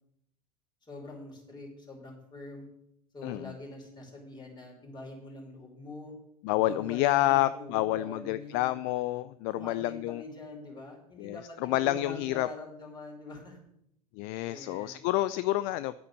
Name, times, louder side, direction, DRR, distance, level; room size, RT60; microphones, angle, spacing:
voice 1, 0.9-2.7 3.1-6.1 6.6-8.7 9.5-13.6 14.4-15.0, left 3 dB, 20° left, 0 dB, 5.0 m, -44 dB
voice 2, 3.2-3.6 6.4-10.2 11.2-12.5 14.1-15.9, left 16 dB, 50° left, 15 dB, 0.5 m, -29 dB
10.0 x 8.6 x 6.7 m, 0.75 s
hypercardioid pair, 80°, 19 cm